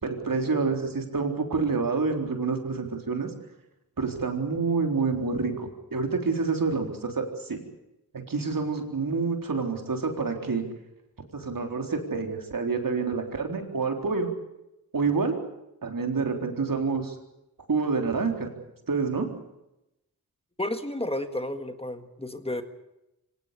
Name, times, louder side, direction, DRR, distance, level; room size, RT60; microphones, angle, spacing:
voice 1, 0.0-3.3 4.0-7.6 8.3-10.6 11.3-14.3 14.9-15.4 15.8-17.2 17.7-18.5 18.9-19.3, right 4 dB, 60° right, 4 dB, 4.0 m, -27 dB
voice 2, 20.6-22.6, left 1 dB, 15° left, 8 dB, 1.8 m, -32 dB
24.5 x 18.5 x 8.4 m, 0.90 s
wide cardioid pair, 70°, 37 cm